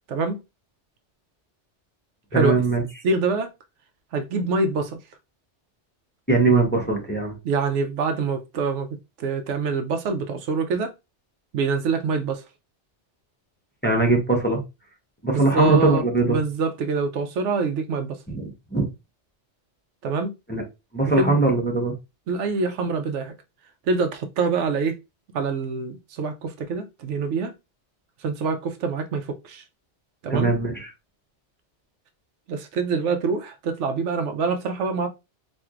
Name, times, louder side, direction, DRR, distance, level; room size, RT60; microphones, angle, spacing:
voice 1, 0.1-0.4 2.3-2.6 3.0-3.5 4.1-5.0 7.4-10.9 11.5-12.4 15.3-16.0 16.3-18.2 20.0-20.3 21.2-21.4 22.3-23.3 23.9-24.9 25.3-27.5 28.2-29.6 30.2-30.5 32.5-35.1, right 4 dB, 80° right, 0.9 m, -25 dB
voice 2, 2.3-2.8 6.3-7.3 13.8-14.6 15.2-16.4 18.3-18.9 20.5-20.6 20.9-21.9 30.3-30.9, right 3 dB, 10° left, 0.7 m, -21 dB
4.4 x 2.6 x 2.4 m
omnidirectional pair, 1.2 m